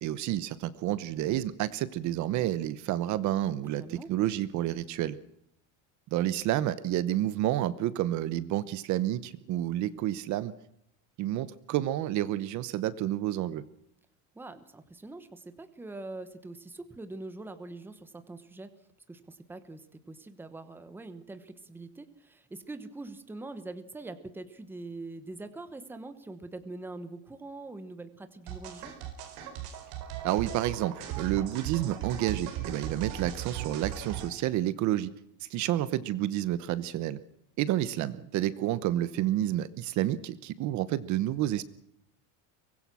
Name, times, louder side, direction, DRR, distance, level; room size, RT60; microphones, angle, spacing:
voice 1, 0.0-5.2 6.1-10.5 11.2-13.6 30.2-35.1 35.4-37.2 37.6-41.6, right 13 dB, 45° right, 16 dB, 1.0 m, -30 dB
voice 2, 3.8-4.1 14.3-18.8 19.1-28.9, right 2 dB, 5° right, 10 dB, 1.1 m, -43 dB
sound 1, 28.5-34.3, right 10 dB, 60° right, 4.9 m, -37 dB
24.0 x 20.0 x 6.1 m, 0.74 s
cardioid pair, 180°, 40 cm